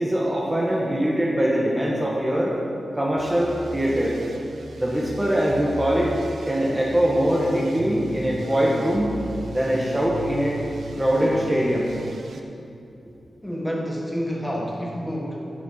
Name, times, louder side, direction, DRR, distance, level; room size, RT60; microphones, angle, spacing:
voice 1, 0.0-2.5 2.9-4.2 4.7-6.2 6.5-9.1 9.5-10.6 11.0-11.9, equal, 15° right, -4 dB, 1.5 m, -22 dB
sound 1, 3.2-12.4, right 2 dB, 75° right, 1.0 m, -36 dB
voice 2, 13.4-15.5, equal, 5° left, -2 dB, 1.7 m, -29 dB
11.0 x 9.8 x 5.8 m, 2.7 s
wide cardioid pair, 125°, 0 cm